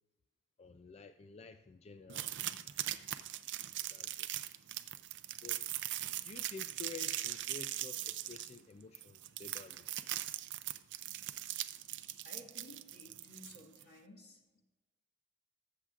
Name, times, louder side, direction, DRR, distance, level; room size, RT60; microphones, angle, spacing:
voice 1, 0.6-2.5 3.8-4.3 5.4-5.7 6.2-9.9, left 4 dB, 30° left, 9 dB, 0.3 m, -51 dB
sound 1, 2.1-13.8, right 13 dB, 55° right, 0.5 m, -40 dB
voice 2, 12.2-14.6, left 1 dB, 45° left, 0 dB, 1.7 m, -56 dB
20.5 x 7.4 x 2.5 m, 1.2 s
head